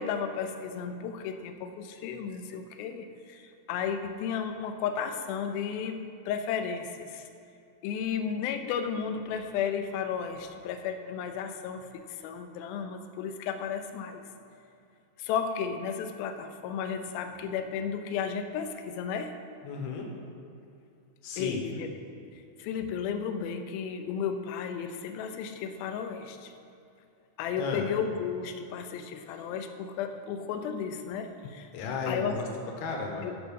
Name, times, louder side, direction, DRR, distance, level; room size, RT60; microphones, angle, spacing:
voice 1, 0.0-7.3 7.8-14.2 15.2-19.4 21.4-21.9 22.3-26.5 27.4-31.7 32.1-32.4 33.2-33.3, left 7 dB, 80° left, 7 dB, 2.4 m, -33 dB
voice 2, 19.6-20.1 21.2-21.6 27.6-27.9 31.7-32.5 32.8-33.3, left 5 dB, 65° left, 1 dB, 2.0 m, -33 dB
13.5 x 5.2 x 5.3 m, 2.6 s
omnidirectional pair, 4.3 m